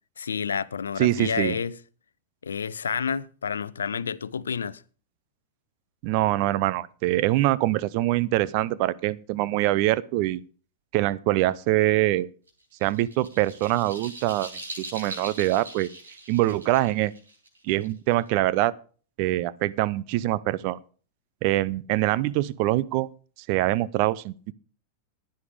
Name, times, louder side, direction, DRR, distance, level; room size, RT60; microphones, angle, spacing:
voice 1, 0.2-1.8 2.4-4.8, left 6 dB, 70° left, 0.5 m, -29 dB
voice 2, 1.0-1.6 6.0-10.4 10.9-12.3 12.8-15.9 16.3-17.1 17.6-18.7 19.2-20.8 21.4-23.1 23.5-24.5, right 16 dB, 45° right, 0.6 m, -24 dB
sound 1, 12.5-18.3, right 2 dB, 75° right, 6.5 m, -41 dB
15.5 x 10.5 x 3.5 m
figure-of-eight pair, 90°, 0 cm